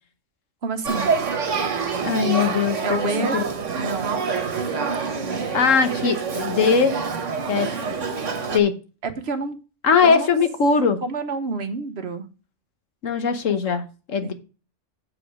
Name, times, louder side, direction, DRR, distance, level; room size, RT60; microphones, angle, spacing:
voice 1, 0.6-1.1 2.8-3.3 3.8-4.2 9.0-9.6 10.0-10.3 11.0-12.3, right 4 dB, 60° right, 1.2 m, -28 dB
Male speech man speaking / Child speech kid speaking / Conversation, 0.8-8.6, right 5 dB, 75° right, 1.5 m, -26 dB
voice 2, 2.0-2.8 3.2-3.4 5.5-6.9 7.5-7.7 8.5-8.7 9.8-11.0 13.0-14.3, left 5 dB, 85° left, 1.5 m, -20 dB
7.5 x 5.0 x 6.2 m
omnidirectional pair, 1.3 m